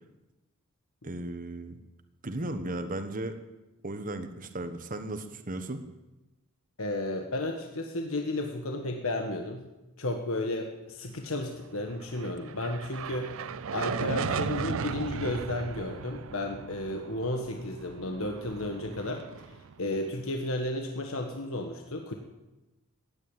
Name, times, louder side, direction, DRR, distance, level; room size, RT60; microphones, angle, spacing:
voice 1, 1.0-1.8 2.2-3.4 3.8-5.8, right 1 dB, 40° right, 8 dB, 1.2 m, -35 dB
voice 2, 6.8-9.7 10.0-13.4 13.7-22.1, left 2 dB, 65° left, 3 dB, 1.5 m, -33 dB
sound 1, 11.9-20.3, right 6 dB, 65° right, 0.5 m, -36 dB
15.5 x 10.5 x 9.0 m, 1.0 s
head